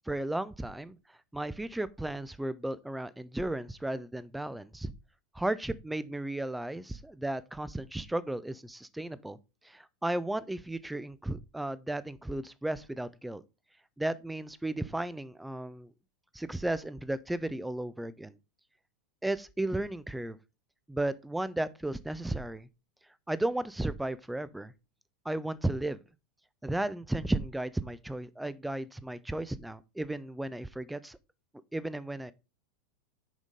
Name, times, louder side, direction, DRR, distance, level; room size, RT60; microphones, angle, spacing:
voice 1, 0.1-1.0 1.3-4.9 5.3-9.4 9.6-13.4 14.0-15.9 16.3-18.3 19.2-20.4 20.9-22.7 23.3-24.7 25.2-26.0 26.6-31.2 31.7-32.3, right 1 dB, 5° right, 0.4 m, -34 dB
6.1 x 5.1 x 3.8 m
figure-of-eight pair, 85°, 0 cm